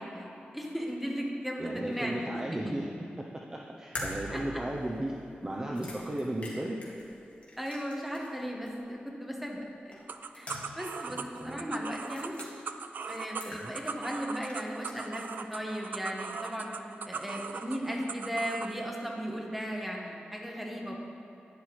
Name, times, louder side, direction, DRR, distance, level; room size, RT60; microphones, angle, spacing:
voice 1, 0.0-2.3 4.3-4.4 7.6-9.6 9.8-10.0 10.3-12.4 13.1-16.7 17.0-21.0, equal, 5° right, -1 dB, 1.2 m, -36 dB
voice 2, 1.6-2.9 3.2-5.1 5.4-6.8 11.1-11.6 13.5-13.7, right 1 dB, 20° right, -1 dB, 0.6 m, -35 dB
sound 1, 3.9-8.4 8.7-8.8 9.9-10.9 11.2-11.3 12.0-12.5 13.0-14.1 14.3-15.2, left 1 dB, 40° left, 2.0 m, -44 dB
sound 2, 10.1-18.7, right 5 dB, 60° right, 0.3 m, -40 dB
11.0 x 9.8 x 3.2 m, 3.0 s
wide cardioid pair, 130°, 4 cm